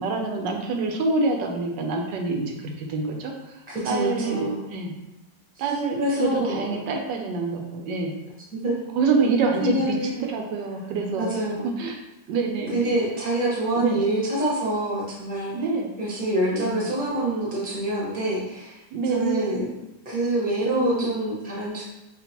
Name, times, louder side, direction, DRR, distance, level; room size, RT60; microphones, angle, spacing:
voice 1, 0.0-3.6 3.8-4.9 5.6-8.1 9.0-11.3 11.8-12.0 12.3-12.9 13.7-14.0 15.5-15.9 16.5-16.9 18.9-19.7 20.8-21.1, right 4 dB, 75° right, 2 dB, 1.2 m, -26 dB
voice 2, 3.7-4.7 6.0-6.6 8.5-8.8 9.6-10.3 11.2-11.7 12.7-15.5 16.0-18.8 19.1-19.7 20.0-21.8, right 1 dB, 5° right, -6 dB, 0.7 m, -26 dB
5.1 x 2.5 x 2.8 m, 0.96 s
omnidirectional pair, 2.0 m